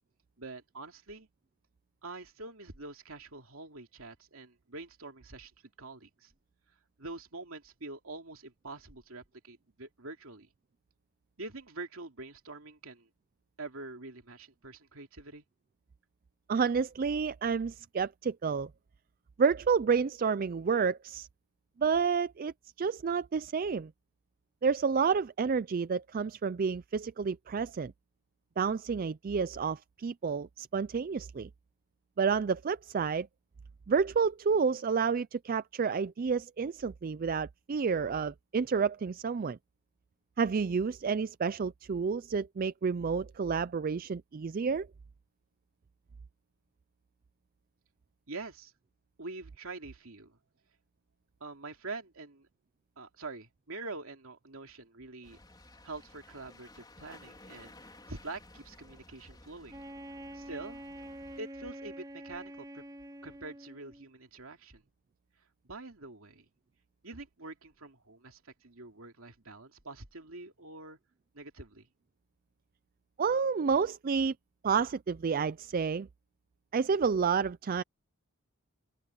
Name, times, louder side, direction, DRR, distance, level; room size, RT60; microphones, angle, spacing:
voice 1, 0.4-1.3 2.0-5.5 5.8-6.3 7.0-10.5 11.4-13.1 13.6-15.4 48.3-48.7 49.2-50.4 51.4-52.5 53.0-55.4 55.8-57.7 58.1-59.8 60.3-60.8 61.4-62.8 63.2-64.8 65.6-66.5 67.0-71.0 71.3-71.9, right 3 dB, 70° right, 2.8 m, -45 dB
voice 2, 16.5-18.7 19.4-21.3 21.8-22.5 22.8-23.9 24.6-27.9 28.6-31.5 32.2-33.3 33.9-39.6 40.4-44.9 73.2-74.3 74.6-76.1 76.7-77.8, right 5 dB, 40° right, 0.4 m, -30 dB
sound 1, 55.2-61.4, left 2 dB, 20° left, 4.2 m, -55 dB
Wind instrument woodwind instrument, 59.7-64.1, right 1 dB, 20° right, 3.0 m, -46 dB
open air
head